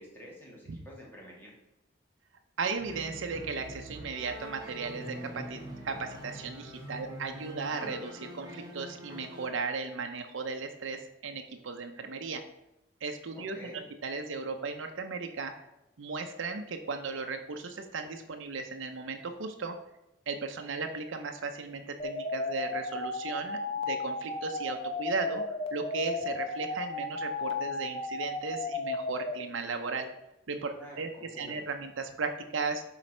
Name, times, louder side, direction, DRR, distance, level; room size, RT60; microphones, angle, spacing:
voice 1, 0.0-1.5 13.4-13.9 30.7-31.6, equal, 10° left, -4 dB, 1.9 m, -48 dB
voice 2, 2.6-12.4 13.0-13.7 14.0-15.5 16.0-19.8 20.3-25.4 25.7-30.1 30.5-31.1 31.4-32.8, right 4 dB, 85° right, 5 dB, 0.6 m, -36 dB
sound 1, 2.7-9.5, right 1 dB, 20° right, 2.0 m, -44 dB
sound 2, 22.0-29.3, left 3 dB, 30° left, 0.8 m, -34 dB
7.4 x 4.0 x 5.4 m, 0.92 s
head